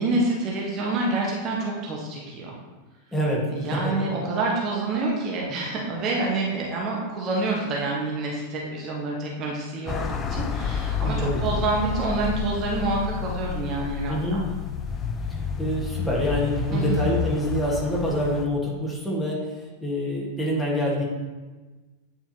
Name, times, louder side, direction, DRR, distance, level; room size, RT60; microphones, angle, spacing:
voice 1, 0.0-2.5 3.5-14.4 16.7-17.0, right 2 dB, 35° right, -3 dB, 1.2 m, -27 dB
voice 2, 3.1-4.1 11.0-11.4 14.1-14.4 15.3-19.4 19.8-21.0, equal, 5° left, -4 dB, 1.6 m, -26 dB
sound 1, 9.9-18.5, left 6 dB, 25° left, 0.5 m, -29 dB
8.6 x 4.3 x 2.9 m, 1.2 s
figure-of-eight pair, 90°, 0 cm